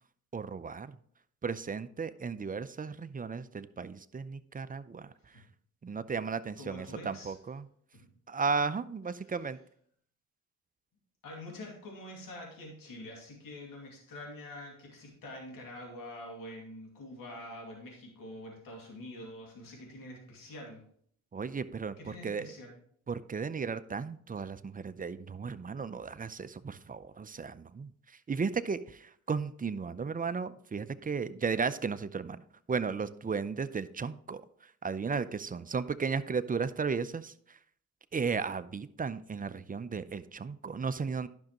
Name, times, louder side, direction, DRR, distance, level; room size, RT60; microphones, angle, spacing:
voice 1, 0.3-0.9 1.4-5.1 5.8-7.7 8.3-9.6 21.3-22.5 23.1-32.4 32.7-37.6 38.1-41.3, right 5 dB, 25° right, 13 dB, 0.5 m, -35 dB
voice 2, 6.6-7.3 8.0-8.1 9.2-9.3 11.2-20.8 22.0-22.7, left 1 dB, 80° left, 0 dB, 2.4 m, -46 dB
10.5 x 6.3 x 3.0 m, 0.62 s
cardioid pair, 65°, 33 cm